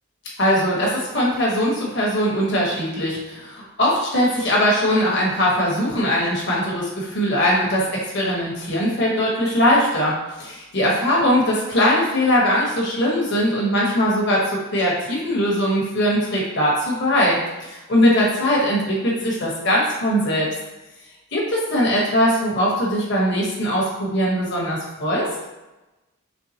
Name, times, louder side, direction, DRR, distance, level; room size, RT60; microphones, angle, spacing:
voice 1, 0.4-20.5 21.3-25.3, equal, 50° left, -4 dB, 1.2 m, -20 dB
4.5 x 3.4 x 2.8 m, 1.0 s
head